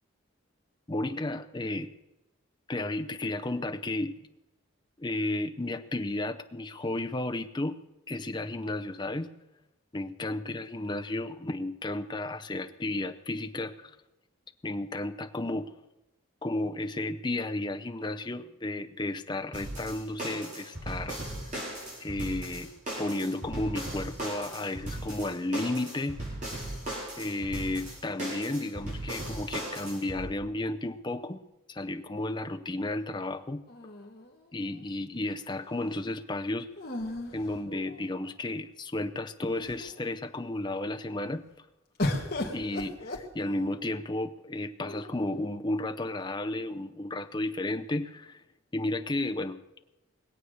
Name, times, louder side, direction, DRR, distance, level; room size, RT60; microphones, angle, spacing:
voice 1, 0.9-1.9 2.7-4.2 5.0-7.8 8.1-9.3 9.9-13.9 14.6-15.7 16.4-21.3 22.0-22.7 23.0-26.2 27.2-31.4 31.7-33.6 34.5-36.7 37.3-41.6 42.5-48.4 48.7-49.6, left 2 dB, 20° left, 8 dB, 0.6 m, -33 dB
sound 1, 19.5-30.2, right 1 dB, 35° right, 5.4 m, -37 dB
sound 2, 33.7-34.8 36.8-38.3 39.0-39.1 39.4-40.0 42.0-43.9 44.8-45.5, left 1 dB, 45° left, 1.8 m, -36 dB
20.5 x 8.2 x 6.4 m, 0.98 s
head